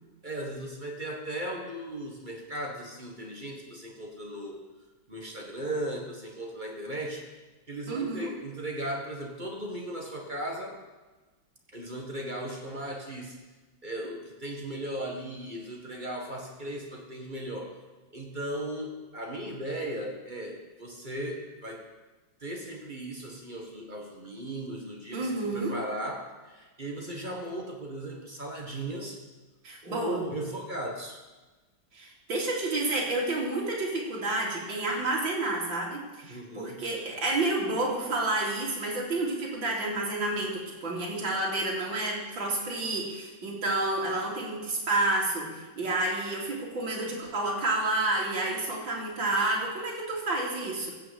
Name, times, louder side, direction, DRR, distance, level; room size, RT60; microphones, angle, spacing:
voice 1, 0.2-4.6 5.1-7.3 7.7-10.8 11.7-13.4 13.8-17.7 18.1-21.9 22.4-29.2 29.8-31.2 36.2-36.8, right 1 dB, 25° right, 0 dB, 1.6 m, -37 dB
voice 2, 7.9-8.3 25.1-25.7 29.6-30.3 31.9-50.9, right 2 dB, 60° right, -4 dB, 3.6 m, -30 dB
15.0 x 6.1 x 7.8 m, 1.2 s
omnidirectional pair, 2.3 m